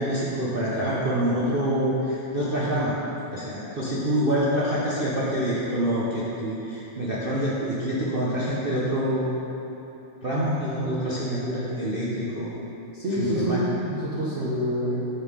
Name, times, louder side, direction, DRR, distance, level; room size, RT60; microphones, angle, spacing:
voice 1, 0.0-2.9 3.3-9.3 10.2-12.5 13.1-13.6 14.4-14.5, equal, 75° right, -8 dB, 0.5 m, -26 dB
voice 2, 12.9-15.0, equal, 55° right, -8 dB, 0.8 m, -27 dB
7.2 x 5.4 x 4.8 m, 3.0 s
omnidirectional pair, 2.4 m